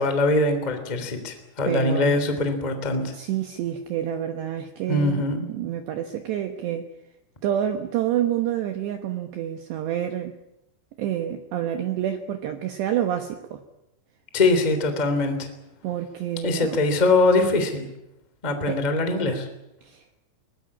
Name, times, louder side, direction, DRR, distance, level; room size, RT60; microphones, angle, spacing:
voice 1, 0.0-3.1 4.9-5.4 14.3-15.5 16.4-17.9 18.4-19.5, left 2 dB, 10° left, 7 dB, 2.3 m, -22 dB
voice 2, 1.7-2.2 3.1-5.2 5.5-6.9 7.4-10.3 11.0-13.6 15.8-16.8 18.7-18.8 19.8-20.0, right 11 dB, 70° right, 5 dB, 3.0 m, -28 dB
23.0 x 19.5 x 8.7 m, 0.87 s
omnidirectional pair, 6.0 m